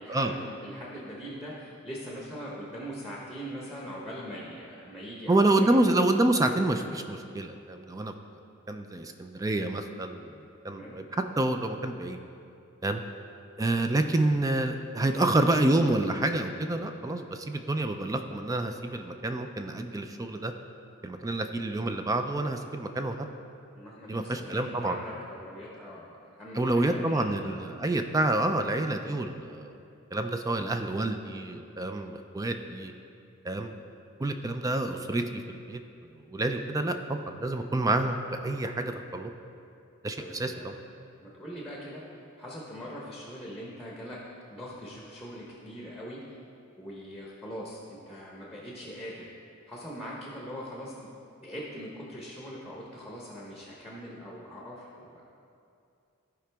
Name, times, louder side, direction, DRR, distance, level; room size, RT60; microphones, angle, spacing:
voice 1, 0.0-5.7 10.7-11.0 23.7-27.3 27.5-27.6 38.7-39.0 40.2-40.7 41.2-42.0 42.4-44.2 44.5-46.2 46.8-49.3 49.7-51.1 51.4-55.2, equal, ahead, -4 dB, 0.9 m, -41 dB
voice 2, 5.3-8.1 8.7-10.3 10.6-11.0 11.4-12.2 12.8-13.0 13.6-20.5 21.0-23.3 24.1-25.0 26.5-29.8 30.1-32.9 33.4-33.8 34.2-35.2 35.5-35.8 36.3-38.2 38.4-39.3 40.0-40.7, right 2 dB, 15° right, 6 dB, 0.3 m, -28 dB
14.0 x 4.9 x 3.4 m, 2.5 s
head